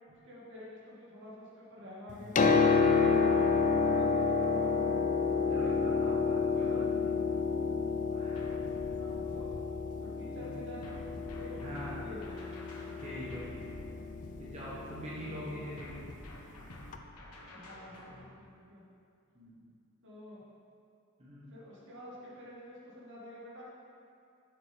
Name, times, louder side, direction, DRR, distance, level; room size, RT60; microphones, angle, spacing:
voice 1, 0.2-2.3 2.8-5.0 8.9-9.5 10.0-11.0 11.4-12.4 15.2-15.7 17.5-18.8 20.0-20.4 21.5-23.6, equal, 55° right, -6 dB, 2.0 m, -49 dB
Piano, 2.1-15.8 16.9-17.0, left 4 dB, 35° left, 0.4 m, -30 dB
voice 2, 2.8-3.2 5.5-7.2 8.1-8.5 10.3-10.5 11.5-12.0 13.0-13.5 14.4-16.0 19.3-19.6 21.2-21.5, equal, 30° right, -9 dB, 1.3 m, -44 dB
sound 1, 8.4-10.1 10.8-15.0 15.8-18.3, left 1 dB, 90° left, 1.2 m, -50 dB
7.0 x 6.5 x 5.2 m, 2.5 s
head